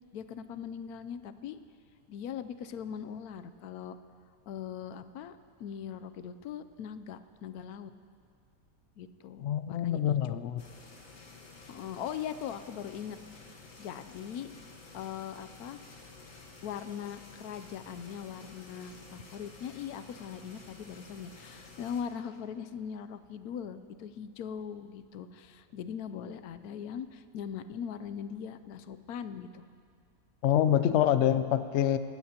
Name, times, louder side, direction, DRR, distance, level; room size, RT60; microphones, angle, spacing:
voice 1, 0.1-1.6 2.1-4.0 4.5-7.9 9.0-10.4 11.7-14.5 14.9-15.8 16.6-29.7, left 8 dB, 70° left, 11 dB, 1.0 m, -40 dB
voice 2, 9.4-10.6 30.4-32.0, left 10 dB, 90° left, 12 dB, 0.6 m, -26 dB
sound 1, 10.6-22.0, left 3 dB, 50° left, 1.7 m, -52 dB
20.0 x 15.5 x 2.9 m, 2.3 s
omnidirectional pair, 1.8 m